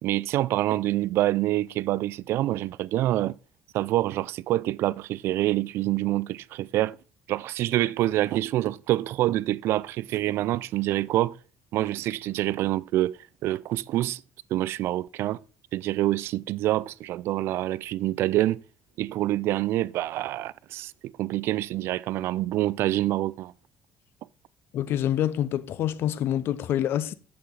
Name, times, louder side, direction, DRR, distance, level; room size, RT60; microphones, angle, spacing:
voice 1, 0.0-3.4 3.7-7.0 7.3-11.4 11.7-14.2 14.5-15.4 15.7-18.6 19.0-23.5, right 15 dB, 70° right, 0.4 m, -26 dB
voice 2, 24.7-27.1, left 11 dB, 65° left, 0.7 m, -26 dB
8.6 x 7.3 x 3.8 m
cardioid pair, 120°, 4 cm